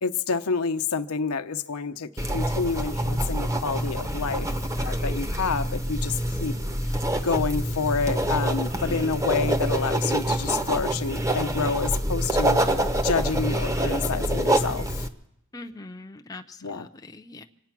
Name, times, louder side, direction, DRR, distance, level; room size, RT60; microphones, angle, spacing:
voice 1, 0.0-4.5 4.8-6.5 7.2-12.6 13.0-15.1 16.6-16.9, left 5 dB, 80° left, 0.8 m, -28 dB
sound 1, 2.2-15.1, right 1 dB, 15° right, 0.9 m, -26 dB
voice 2, 15.5-17.5, left 2 dB, 15° left, 0.6 m, -42 dB
26.0 x 9.3 x 5.9 m
head